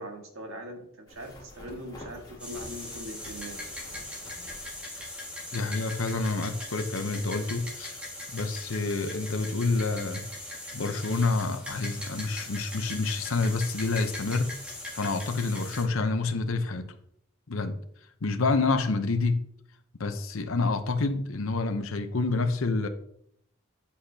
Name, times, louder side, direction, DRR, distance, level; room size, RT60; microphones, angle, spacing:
voice 1, 0.0-3.6, equal, 65° right, 2 dB, 1.7 m, -41 dB
sound 1, 1.1-5.7 6.0-6.1 9.1-9.2 9.5-9.6 9.9-10.6, left 1 dB, 20° left, 2.2 m, -49 dB
sound 2, 2.4-15.8, left 1 dB, 5° right, 1.9 m, -40 dB
voice 2, 5.5-8.0 8.3-10.3 10.7-14.5 14.9-16.9 17.5-17.8 18.2-19.4 20.0-22.9, left 3 dB, 70° left, 7 dB, 0.8 m, -28 dB
8.3 x 8.1 x 2.8 m, 0.69 s
head